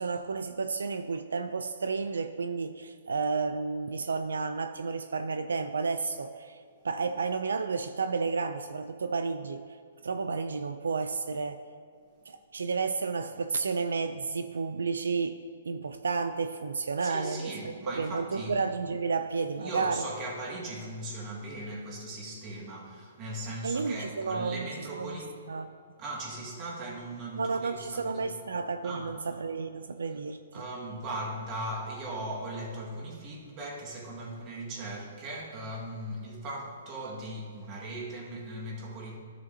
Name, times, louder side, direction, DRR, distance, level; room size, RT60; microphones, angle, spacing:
voice 1, 0.0-9.6 10.0-11.7 12.3-15.4 15.6-20.1 23.6-25.2 25.5-25.7 27.4-30.6, right 4 dB, 90° right, 10 dB, 0.3 m, -32 dB
voice 2, 17.0-18.6 19.6-25.4 26.0-28.3 28.8-29.1 30.5-39.2, right 1 dB, 30° right, -2 dB, 1.7 m, -38 dB
12.5 x 6.8 x 2.7 m, 2.1 s
hypercardioid pair, 140°, 0 cm